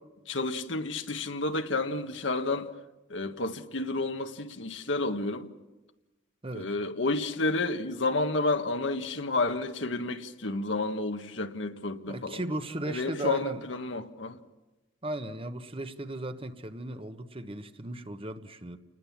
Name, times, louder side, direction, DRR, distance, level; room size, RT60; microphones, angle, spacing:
voice 1, 0.3-2.7 3.1-5.5 6.5-12.4 12.9-14.4, left 2 dB, 80° left, 1.6 m, -30 dB
voice 2, 12.1-13.6 15.0-18.8, right 1 dB, 30° right, 1.3 m, -36 dB
29.5 x 20.0 x 7.4 m
head